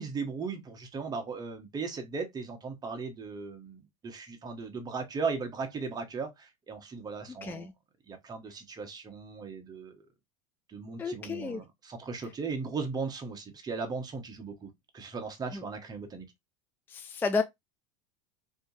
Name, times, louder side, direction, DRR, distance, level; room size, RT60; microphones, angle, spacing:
voice 1, 0.0-7.7 8.1-10.0 10.7-16.3, right 4 dB, 20° right, 1.0 m, -37 dB
voice 2, 7.4-7.7 11.0-11.6 15.5-15.6 16.9-17.4, left 4 dB, 10° left, 0.3 m, -31 dB
3.4 x 2.7 x 2.7 m
supercardioid pair, 110°, 18 cm